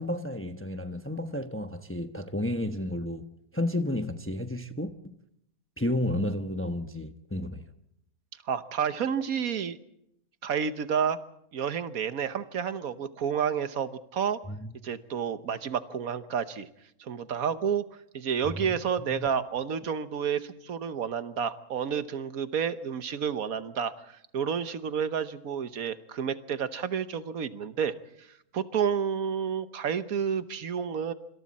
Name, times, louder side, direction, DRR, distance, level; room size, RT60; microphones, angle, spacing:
voice 1, 0.0-3.2 3.5-5.1 5.8-7.7 14.5-14.8 18.4-18.8 19.1-19.3, left 1 dB, 10° left, 0.9 m, -32 dB
voice 2, 8.5-9.8 10.4-11.2 11.5-14.4 14.8-16.7 17.0-17.9 18.1-27.9 28.5-31.1, right 7 dB, 70° right, 1.4 m, -30 dB
26.5 x 25.5 x 4.2 m
omnidirectional pair, 1.6 m